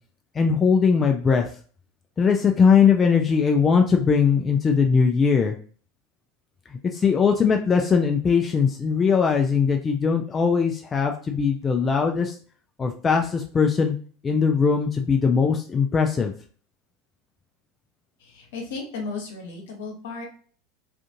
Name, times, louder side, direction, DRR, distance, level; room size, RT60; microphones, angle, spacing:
voice 1, 0.4-1.5 2.2-5.6 6.9-12.3 12.8-13.9 14.2-16.3, left 6 dB, 25° left, 2 dB, 0.3 m, -20 dB
voice 2, 18.2-20.2, left 4 dB, 75° left, 0 dB, 1.0 m, -34 dB
2.5 x 2.5 x 2.6 m, 0.43 s
hypercardioid pair, 85°, 0 cm